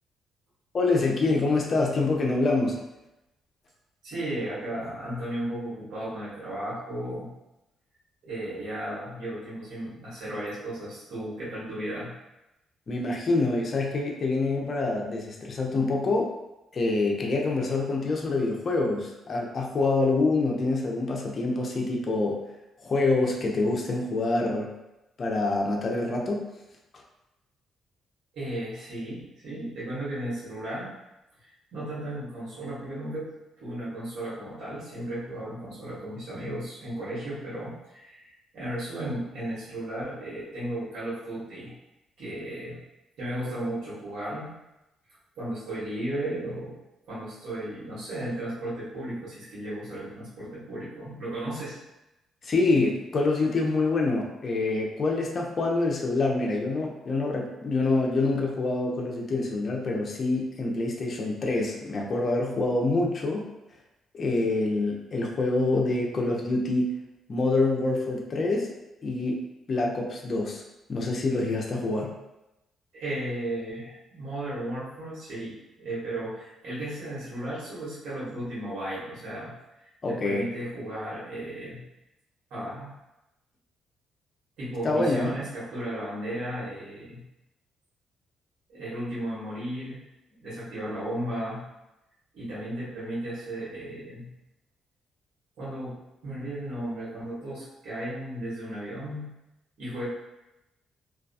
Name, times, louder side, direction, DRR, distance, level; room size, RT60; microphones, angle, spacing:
voice 1, 0.7-2.8 12.9-16.3 16.7-22.4 22.8-24.7 25.2-26.4 52.4-63.4 64.1-66.9 67.3-68.7 69.0-69.4 69.7-70.6 70.9-72.1 80.0-80.4 84.8-85.4, left 3 dB, 45° left, 0 dB, 0.5 m, -26 dB
voice 2, 4.0-7.3 8.2-12.2 28.3-30.9 31.7-33.3 33.6-41.7 42.2-42.8 43.2-44.5 45.4-46.8 47.0-51.8 72.9-79.5 79.8-81.8 82.5-83.0 84.6-87.2 88.7-90.0 90.4-91.6 92.3-94.3 95.6-95.9 96.2-99.3 99.8-100.1, right 1 dB, 75° right, -8 dB, 1.1 m, -35 dB
2.3 x 2.2 x 2.6 m, 0.94 s
cardioid pair, 90°, 0 cm